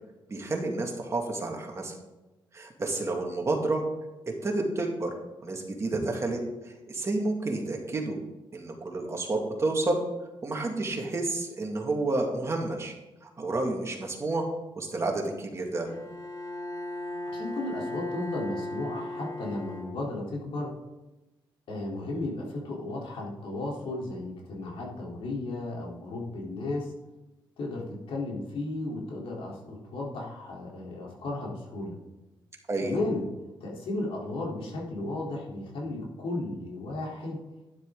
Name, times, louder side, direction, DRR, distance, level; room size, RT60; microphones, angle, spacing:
voice 1, 0.3-2.0 2.5-3.8 4.4-5.1 5.4-6.4 6.6-8.2 8.5-10.0 10.4-12.9 13.2-14.5 14.8-15.9 32.7-33.0, right 2 dB, 30° right, 1 dB, 2.3 m, -30 dB
Bowed string instrument, 15.9-20.4, left 1 dB, 40° left, 2.4 m, -37 dB
voice 2, 17.3-20.7 21.7-26.9 27.6-32.0 32.8-33.2 33.6-37.4, left 2 dB, 75° left, -3 dB, 3.6 m, -34 dB
12.0 x 10.5 x 3.8 m, 1.1 s
cardioid pair, 115°, 9 cm